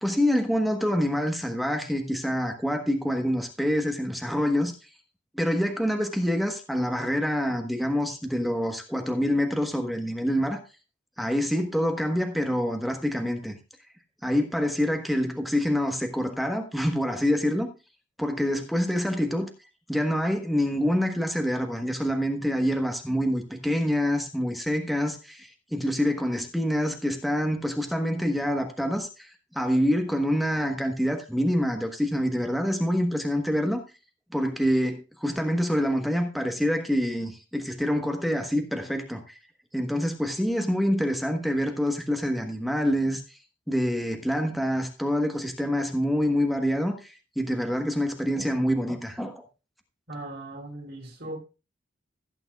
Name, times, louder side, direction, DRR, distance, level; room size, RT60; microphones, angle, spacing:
voice 1, 0.0-4.7 5.3-10.6 11.2-13.6 14.2-17.7 18.2-19.5 19.9-33.8 34.3-39.4 39.7-43.4 43.7-49.4, equal, ahead, 1.2 m, -26 dB
voice 2, 50.1-51.4, right 2 dB, 60° right, 3.5 m, -38 dB
15.5 x 9.0 x 2.4 m
head